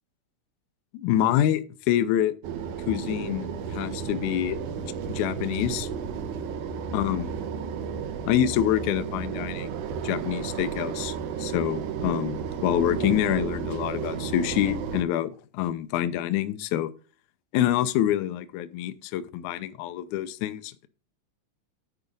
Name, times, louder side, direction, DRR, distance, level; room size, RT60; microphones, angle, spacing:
voice 1, 0.9-2.3 2.9-5.9 6.9-7.3 8.2-9.7 10.0-16.9 17.5-20.9, left 12 dB, 75° left, 1.9 m, -26 dB
sound 1, 2.4-15.0, right 7 dB, 75° right, 2.3 m, -33 dB
10.5 x 4.9 x 5.2 m
omnidirectional pair, 3.8 m